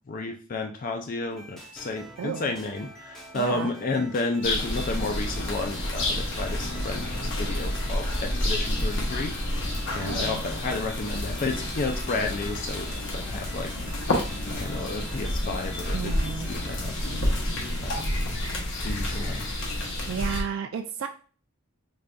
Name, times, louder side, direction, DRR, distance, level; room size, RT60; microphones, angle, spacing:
voice 1, 0.1-9.3 9.9-13.7 14.6-17.2 17.8-18.0 18.8-19.4, left 3 dB, 40° left, 3 dB, 0.4 m, -32 dB
sound 1, 1.3-19.4, right 1 dB, ahead, 0.7 m, -46 dB
voice 2, 2.2-2.5 3.3-3.7 10.0-10.4 15.9-16.5 20.1-21.1, right 7 dB, 65° right, 5 dB, 0.3 m, -32 dB
sound 2, 4.4-20.4, left 1 dB, 60° left, 0.9 m, -29 dB
4.8 x 2.5 x 2.2 m, 0.39 s
head